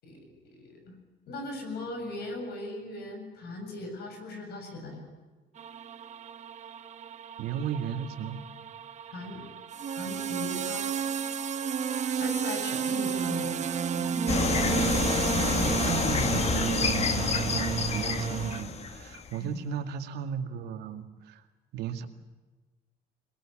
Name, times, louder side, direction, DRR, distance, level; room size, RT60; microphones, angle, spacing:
voice 1, 0.0-1.0 1.3-5.1 9.1-9.4 9.9-10.9 12.2-13.6 14.0-14.3 19.4-19.6, left 2 dB, 70° left, 5 dB, 7.5 m, -39 dB
sound 1, 5.6-18.6, right 7 dB, 45° right, 1.3 m, -32 dB
voice 2, 7.4-8.4 15.0-15.3 15.7-21.4 21.7-22.1, right 8 dB, 80° right, 7 dB, 2.3 m, -35 dB
sound 2, 14.3-19.4, left 5 dB, 40° left, 1.7 m, -28 dB
22.0 x 21.5 x 8.9 m, 1.2 s
cardioid pair, 110°, 17 cm